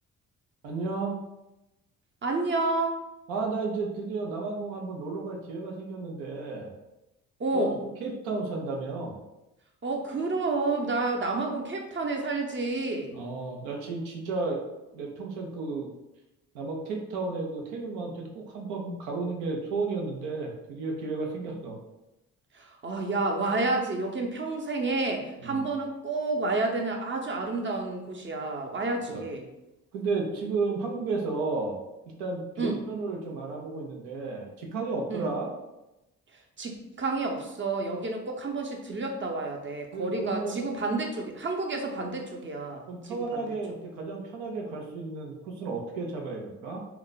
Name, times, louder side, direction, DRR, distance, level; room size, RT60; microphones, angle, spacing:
voice 1, 0.6-1.2 3.3-6.7 7.5-9.2 13.1-14.6 14.9-15.9 16.5-21.8 25.4-25.7 29.1-29.2 29.9-31.8 32.2-35.5 39.9-40.7 42.9-46.8, right 3 dB, 90° right, 0 dB, 0.6 m, -33 dB
voice 2, 2.2-3.0 7.4-7.8 9.8-13.2 21.5-21.6 22.5-29.5 32.6-32.8 35.1-35.3 36.6-43.5, right 3 dB, 30° right, 2 dB, 0.7 m, -30 dB
2.4 x 2.3 x 3.8 m, 0.95 s
supercardioid pair, 55°, 39 cm